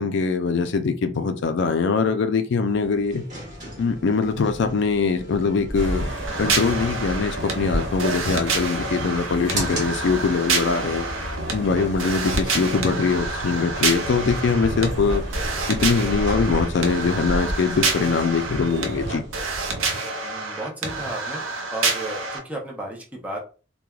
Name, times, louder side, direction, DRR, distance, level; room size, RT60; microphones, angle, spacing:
voice 1, 0.0-3.2 3.8-6.1 6.4-11.1 11.5-15.2 15.7-19.2, left 4 dB, 60° left, 0.4 m, -22 dB
sound 1, 2.7-19.9, equal, 40° right, 1.2 m, -35 dB
sound 2, 5.7-19.2, equal, 65° right, 1.1 m, -33 dB
sound 3, 6.3-22.4, right 4 dB, 90° right, 0.5 m, -28 dB
voice 2, 20.2-21.4 21.7-23.4, right 1 dB, 10° right, 0.6 m, -33 dB
3.1 x 2.2 x 2.3 m
head